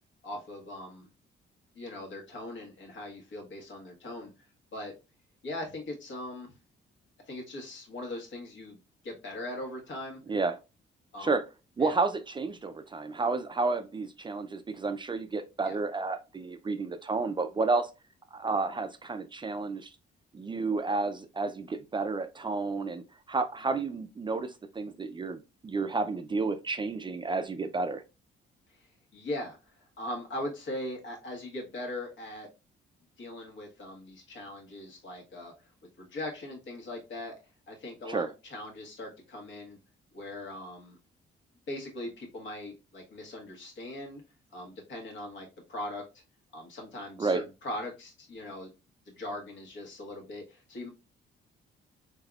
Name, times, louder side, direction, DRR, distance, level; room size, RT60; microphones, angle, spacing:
voice 1, 0.2-1.1 1.7-4.3 4.7-4.9 5.4-6.5 7.3-8.8 9.0-10.2 11.1-11.4 11.8-11.9 15.6-15.8 28.7-28.8 29.1-32.5 33.2-35.5 36.0-37.3 37.7-39.8 40.1-41.0 41.7-44.2 44.5-46.0 46.5-48.7 49.1-50.9, left 1 dB, 70° left, 1.5 m, -40 dB
voice 2, 11.8-17.9 18.3-19.9 20.3-28.0 38.1-38.3 47.2-47.4, right 3 dB, 25° right, 0.4 m, -31 dB
3.6 x 3.4 x 2.3 m
cardioid pair, 90°, 20 cm